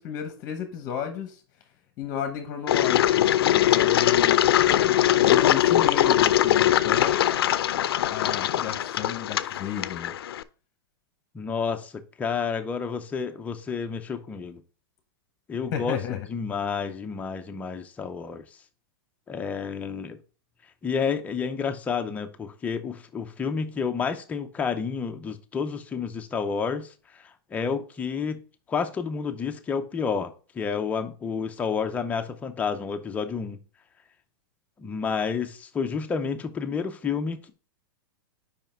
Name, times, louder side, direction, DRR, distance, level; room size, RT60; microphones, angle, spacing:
voice 1, 0.0-1.4 2.0-7.2 8.1-10.1 15.7-16.2, left 8 dB, 30° left, 0.9 m, -33 dB
Engine, 2.7-10.4, left 12 dB, 90° left, 0.5 m, -21 dB
voice 2, 11.3-14.6 15.5-18.5 19.3-20.2 20.8-33.6 34.8-37.5, left 6 dB, 10° left, 0.6 m, -30 dB
5.5 x 5.0 x 4.4 m
supercardioid pair, 160°, 12 cm